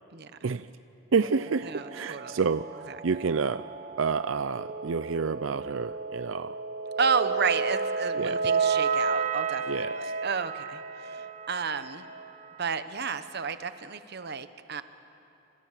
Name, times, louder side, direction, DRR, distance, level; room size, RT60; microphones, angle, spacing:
voice 1, 1.1-3.7 4.0-6.6 8.2-8.4 9.7-9.9, right 5 dB, 90° right, 13 dB, 0.5 m, -29 dB
sound 1, 1.2-12.5, right 5 dB, 40° right, 0.8 m, -32 dB
voice 2, 1.6-2.4 2.9-3.0 7.0-12.1 12.6-14.8, right 5 dB, 55° right, 11 dB, 1.1 m, -31 dB
29.0 x 26.5 x 7.5 m, 2.9 s
head